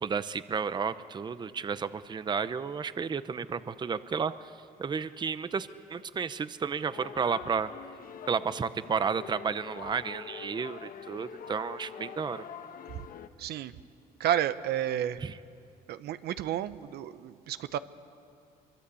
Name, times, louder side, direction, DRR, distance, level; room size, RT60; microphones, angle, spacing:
voice 1, 0.0-4.5 4.8-7.7 8.3-12.4 15.2-15.4, right 6 dB, 25° right, 14 dB, 0.7 m, -32 dB
sound 1, 6.9-13.3, left 8 dB, 55° left, 1.2 m, -45 dB
voice 2, 13.4-13.7 14.2-15.2 15.9-17.8, right 11 dB, 70° right, 13 dB, 0.9 m, -31 dB
24.0 x 23.0 x 8.4 m, 2.4 s
cardioid pair, 110°, 17 cm